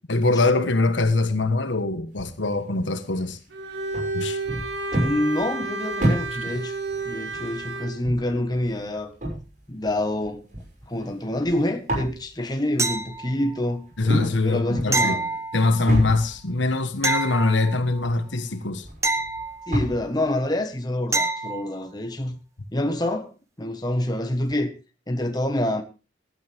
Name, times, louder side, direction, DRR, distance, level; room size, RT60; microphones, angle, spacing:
voice 1, 0.1-3.4 4.1-4.4 14.0-15.2 15.5-18.8, left 2 dB, 75° left, 1.4 m, -23 dB
sound 1, 2.1-2.3 3.1-3.3 3.9-11.6 11.9-12.4 13.9-14.4 14.7-15.4 15.9-17.1 17.5-17.6 18.0-20.2, right 1 dB, 40° right, 6.0 m, -30 dB
Bowed string instrument, 3.5-8.0, right 2 dB, 75° right, 2.3 m, -31 dB
voice 2, 5.0-6.8 7.0-9.1 9.7-10.4 10.9-13.8 14.4-15.3 19.7-22.4 22.7-23.3 23.6-24.7 25.1-25.8, left 1 dB, 20° left, 1.5 m, -26 dB
sound 2, 12.8-13.6 14.9-16.0 17.0-18.1 19.0-20.1 21.1-21.7 24.5-24.6, right 3 dB, 15° right, 1.4 m, -27 dB
16.5 x 11.5 x 3.5 m
head